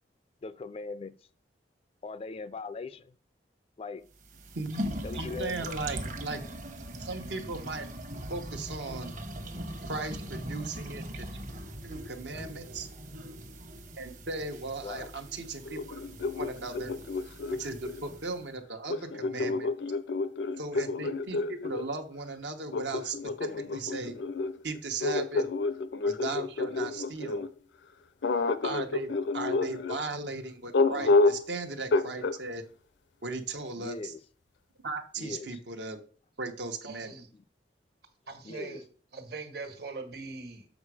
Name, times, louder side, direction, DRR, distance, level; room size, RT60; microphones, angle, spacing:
voice 1, 0.4-1.1 2.0-3.1 3.8-4.0 5.0-5.7 14.8-15.1 33.8-34.2 35.2-35.6 38.4-38.8, left 4 dB, 35° left, 0.3 m, -40 dB
sound 1, 4.1-18.4, equal, 45° right, 1.1 m, -41 dB
voice 2, 4.5-6.4 7.0-7.9 8.3-9.1 9.9-11.2 11.8-12.9 14.0-15.9 16.4-16.9 17.6-19.7 20.6-24.1 24.6-25.5 26.0-27.4 28.6-32.6 33.2-34.1 34.8-36.0 36.4-37.1, right 3 dB, 80° right, 1.1 m, -37 dB
sound 2, 15.7-18.1 18.9-21.9 22.7-27.5 28.2-30.0 30.7-31.5 31.9-32.4, left 3 dB, 85° left, 0.6 m, -29 dB
voice 3, 36.8-37.3 38.3-38.8 39.1-40.7, right 4 dB, 65° right, 1.5 m, -41 dB
7.2 x 5.1 x 4.9 m
head